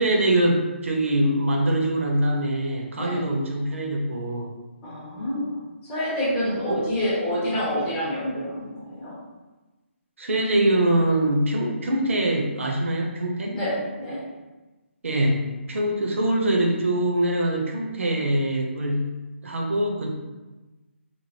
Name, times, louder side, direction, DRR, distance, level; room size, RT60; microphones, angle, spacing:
voice 1, 0.0-4.5 6.7-6.8 10.2-13.6 15.0-19.1 19.4-20.1, right 1 dB, 70° right, 0 dB, 0.7 m, -23 dB
voice 2, 3.0-3.3 4.8-5.6 5.8-9.2 13.5-14.2, equal, 10° left, -9 dB, 0.5 m, -27 dB
3.0 x 2.4 x 2.8 m, 1.2 s
hypercardioid pair, 170°, 7 cm